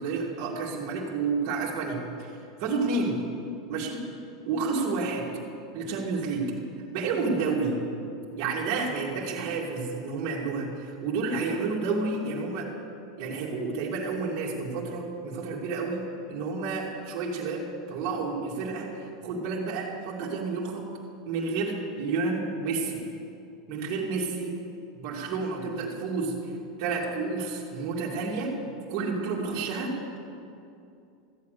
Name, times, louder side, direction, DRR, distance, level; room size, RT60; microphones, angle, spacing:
voice 1, 0.0-2.3 2.6-3.2 3.7-4.0 4.4-5.2 5.7-6.4 6.9-7.8 8.4-12.7 13.2-16.0 16.3-18.9 19.2-20.9 21.3-23.0 23.7-24.5 24.9-26.5 26.8-28.5 28.9-29.9, right 4 dB, 55° right, -3 dB, 2.4 m, -30 dB
14.0 x 8.5 x 6.6 m, 2.6 s
supercardioid pair, 125°, 3 cm